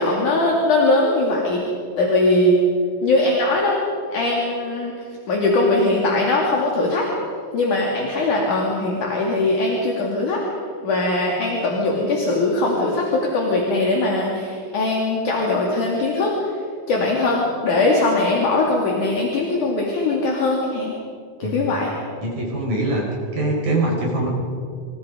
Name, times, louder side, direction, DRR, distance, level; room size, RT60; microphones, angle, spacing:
voice 1, 0.0-1.6 2.0-2.6 3.0-3.8 4.1-4.9 5.3-7.1 7.5-10.4 10.8-16.6 16.9-20.9 21.4-21.9, left 2 dB, 55° left, -2 dB, 4.0 m, -20 dB
voice 2, 22.2-23.1 23.3-24.3, right 2 dB, 60° right, -1 dB, 6.6 m, -23 dB
28.0 x 27.0 x 5.2 m, 2.3 s
omnidirectional pair, 4.3 m